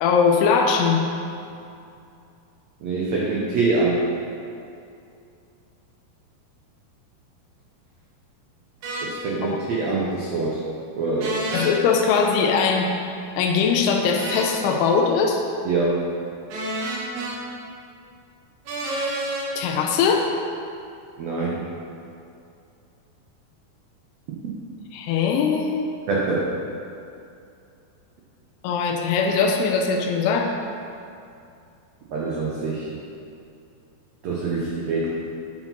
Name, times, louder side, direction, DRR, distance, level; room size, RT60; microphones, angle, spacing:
voice 1, 0.0-1.0 9.4-9.6 11.5-12.9 13.4-15.4 19.6-20.3 24.9-25.9 28.6-30.5, left 5 dB, 85° left, 2 dB, 2.7 m, -21 dB
voice 2, 2.8-4.0 9.0-10.6 11.0-11.5 15.6-16.0 21.2-21.6 26.1-26.5 32.1-32.9 34.2-35.1, right 3 dB, 85° right, -4 dB, 1.5 m, -24 dB
sound 1, 8.8-9.1 11.2-11.7 14.2-14.6 16.5-17.3 18.7-19.5, right 2 dB, 70° right, 2.7 m, -29 dB
9.5 x 4.9 x 5.6 m, 2.5 s
omnidirectional pair, 4.5 m